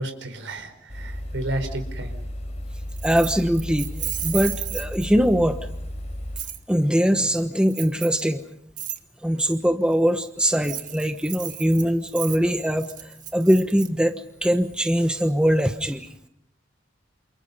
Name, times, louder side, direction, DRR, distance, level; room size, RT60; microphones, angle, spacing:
voice 1, 0.0-2.2, right 1 dB, 90° right, 7 dB, 4.8 m, -32 dB
sound 1, 0.9-6.4, equal, 35° left, 4.0 m, -34 dB
voice 2, 3.0-3.9 4.2-5.6 6.7-8.4 9.2-14.1 14.4-16.1, equal, 5° right, 6 dB, 1.1 m, -22 dB
Keys jangling, 3.0-5.3 6.4-6.6 7.7-8.2 8.8-9.0 10.5-13.9, right 11 dB, 45° right, 1.9 m, -33 dB
29.0 x 28.5 x 5.5 m, 0.72 s
head